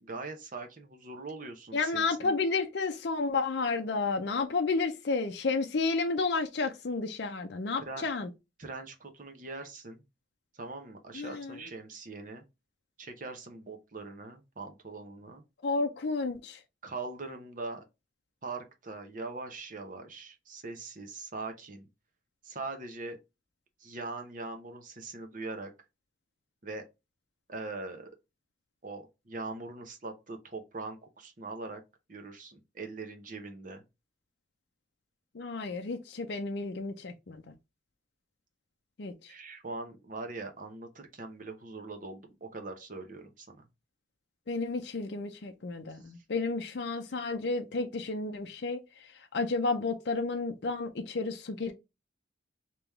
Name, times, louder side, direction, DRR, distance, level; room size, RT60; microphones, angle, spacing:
voice 1, 0.0-2.3 7.8-8.1 8.6-10.0 10.5-12.4 13.0-15.4 16.8-17.8 18.4-21.9 22.4-23.2 23.8-25.7 26.6-26.8 27.5-28.1 28.8-31.8 32.1-33.8 39.3-43.6, right 3 dB, 40° right, 0.8 m, -41 dB
voice 2, 1.7-8.3 11.1-11.6 15.6-16.6 35.3-37.4 39.0-39.3 44.5-51.7, left 3 dB, 55° left, 0.5 m, -31 dB
3.4 x 3.0 x 3.4 m
head